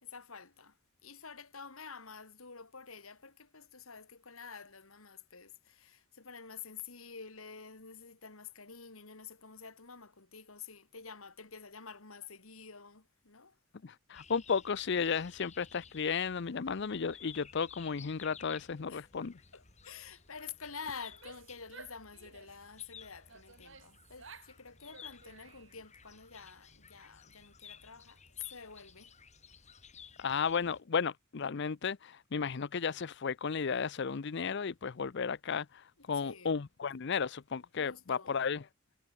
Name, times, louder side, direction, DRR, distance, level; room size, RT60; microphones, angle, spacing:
voice 1, 0.0-0.8 1.0-13.6 18.9-19.1 19.5-29.1 36.0-36.6 37.8-38.4, left 6 dB, 85° left, 3.1 m, -49 dB
voice 2, 13.8-19.3 30.2-38.6, left 6 dB, 55° left, 0.6 m, -34 dB
sound 1, 14.1-30.8, left 6 dB, 35° left, 3.3 m, -56 dB
Female speech woman speaking / Yell, 21.0-22.7 23.3-24.6 24.9-25.9, right 5 dB, 65° right, 8.0 m, -55 dB
head